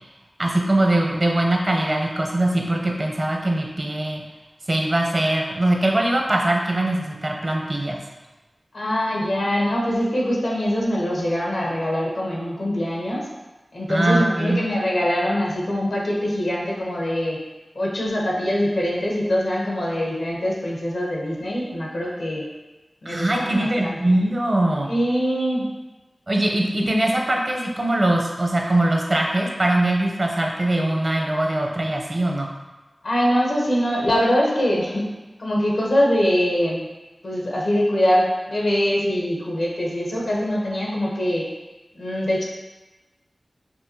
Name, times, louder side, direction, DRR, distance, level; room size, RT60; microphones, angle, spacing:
voice 1, 0.4-4.2 4.7-8.0 13.9-14.7 23.1-24.9 26.3-32.5, right 1 dB, 50° right, 0 dB, 0.7 m, -22 dB
voice 2, 8.7-13.2 13.7-17.4 17.7-22.4 23.0-24.0 24.9-25.7 26.7-27.1 33.0-35.0 35.4-36.9 37.2-41.5 42.0-42.4, equal, 85° left, -4 dB, 1.0 m, -23 dB
5.4 x 2.6 x 2.8 m, 1.1 s
wide cardioid pair, 50°, 0 cm